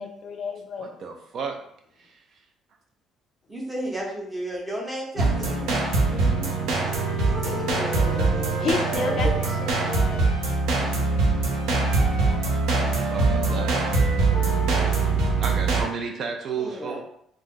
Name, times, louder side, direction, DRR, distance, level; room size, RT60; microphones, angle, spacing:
voice 1, 0.0-1.0 6.1-6.6 8.6-10.3, left 4 dB, 40° left, 3 dB, 0.3 m, -32 dB
voice 2, 0.8-1.6 2.0-2.4 13.1-13.7 14.0-14.3 15.4-17.0, right 5 dB, 45° right, 3 dB, 0.3 m, -33 dB
voice 3, 3.5-5.7 7.2-8.7 8.9-9.4 16.6-17.0, equal, 10° right, -2 dB, 0.7 m, -33 dB
sound 1, 5.2-15.8, right 3 dB, 90° right, 0.7 m, -23 dB
Wind instrument woodwind instrument, 6.8-10.6 11.5-15.1, right 3 dB, 75° right, 1.2 m, -34 dB
2.5 x 2.3 x 3.6 m, 0.73 s
cardioid pair, 155°, 0 cm